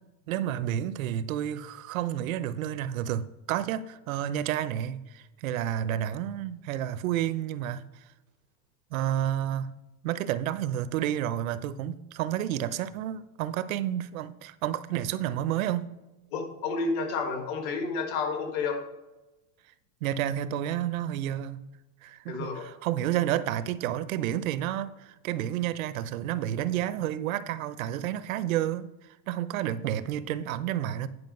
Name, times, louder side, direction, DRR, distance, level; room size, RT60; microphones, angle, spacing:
voice 1, 0.3-7.8 8.9-9.7 10.0-15.9 20.0-21.6 22.0-28.9 29.3-31.1, right 11 dB, 85° right, 0.7 m, -30 dB
voice 2, 16.3-18.8 22.3-22.7, left 4 dB, 45° left, 1.8 m, -30 dB
9.8 x 5.0 x 5.3 m
supercardioid pair, 155°, 40 cm